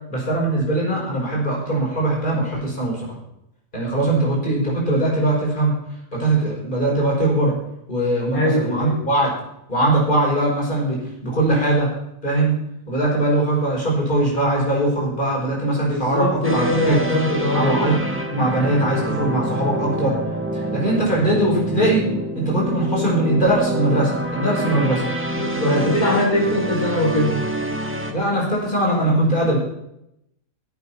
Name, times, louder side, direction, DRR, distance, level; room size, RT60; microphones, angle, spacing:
voice 1, 0.1-3.2 3.7-5.7 6.1-7.5 7.9-9.3 9.7-11.9 12.2-12.6 12.9-17.0 17.5-17.9 18.3-20.2 20.5-22.1 22.3-25.0 25.6-25.9 26.3-26.6 28.1-29.6, right 1 dB, 35° left, -4 dB, 5.8 m, -21 dB
voice 2, 8.3-9.0 15.9-17.9 24.3-24.8 25.4-27.4, left 1 dB, 80° left, -3 dB, 4.2 m, -22 dB
sound 1, 16.4-28.1, right 1 dB, 10° right, 1.4 m, -26 dB
18.0 x 8.5 x 5.8 m, 0.80 s
omnidirectional pair, 1.5 m